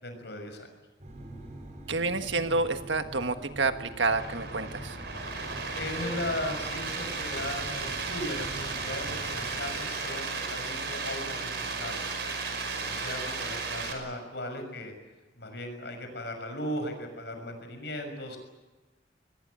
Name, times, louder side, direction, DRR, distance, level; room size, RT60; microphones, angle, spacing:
voice 1, 0.0-0.7 5.7-12.2 12.8-14.9 15.3-18.4, left 1 dB, 65° left, 6 dB, 6.4 m, -37 dB
sound 1, 1.0-9.7, right 1 dB, 40° right, 7.3 m, -44 dB
voice 2, 1.9-5.0, right 3 dB, 80° right, 8 dB, 1.6 m, -29 dB
sound 2, 4.0-13.9, right 4 dB, 65° right, 5.4 m, -34 dB
23.0 x 20.5 x 9.7 m, 1.1 s
head